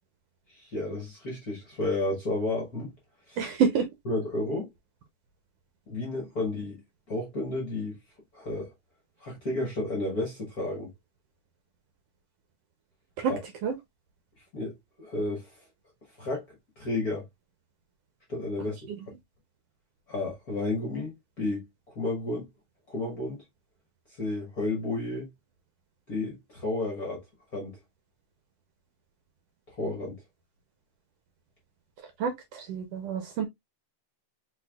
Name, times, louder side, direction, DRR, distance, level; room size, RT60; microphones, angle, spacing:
voice 1, 0.5-2.9 3.3-3.4 4.0-4.7 5.9-6.8 7.1-8.0 8.3-8.7 9.2-10.9 13.2-13.4 14.5-14.7 15.0-15.6 16.2-16.4 16.8-17.2 18.3-18.8 20.1-21.7 21.9-22.5 22.9-23.4 24.2-25.3 26.1-27.2 27.5-27.7 29.7-30.2, left 2 dB, 50° left, 1.1 m, -32 dB
voice 2, 3.4-3.8 13.2-13.3 13.6-13.7 32.2-33.4, right 6 dB, 75° right, 1.5 m, -27 dB
4.3 x 4.3 x 2.3 m
omnidirectional pair, 3.3 m